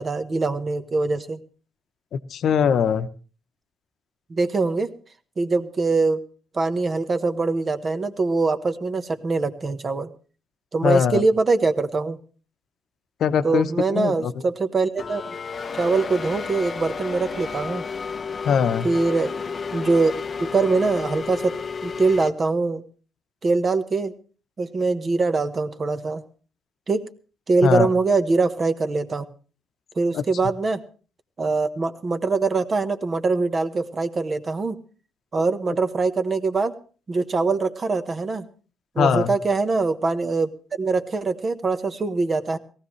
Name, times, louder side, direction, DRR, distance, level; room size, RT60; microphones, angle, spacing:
voice 1, 0.0-1.4 4.3-4.9 5.4-6.2 6.5-10.1 10.7-12.2 13.4-15.3 15.7-17.8 18.8-19.3 19.7-20.1 20.4-21.6 21.8-22.8 23.4-24.1 24.6-26.2 26.9-27.1 27.5-29.2 30.0-30.8 31.4-34.8 35.3-36.7 37.1-38.5 38.9-40.5 40.8-42.6, right 3 dB, 35° right, 10 dB, 1.2 m, -23 dB
voice 2, 2.3-3.1 10.8-11.2 13.2-14.3 18.4-18.9 27.6-27.9 30.1-30.2 39.0-39.3, left 7 dB, 65° left, 10 dB, 0.9 m, -21 dB
sound 1, 15.0-22.3, left 5 dB, 40° left, 0.7 m, -32 dB
18.5 x 15.0 x 3.2 m, 0.38 s
cardioid pair, 90°, 0 cm